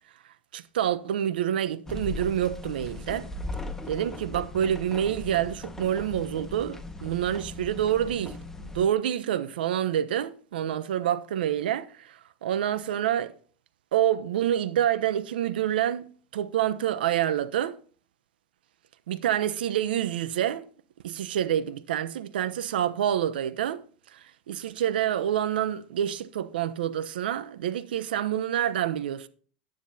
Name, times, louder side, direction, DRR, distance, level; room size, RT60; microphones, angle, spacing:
voice 1, 0.5-3.3 3.9-13.3 13.9-17.8 19.1-20.6 21.0-23.8 24.1-29.3, right 10 dB, 80° right, 0.9 m, -27 dB
sound 1, 1.9-8.9, left 2 dB, 10° left, 1.6 m, -38 dB
15.0 x 9.8 x 2.8 m
hypercardioid pair, 100°, 5 cm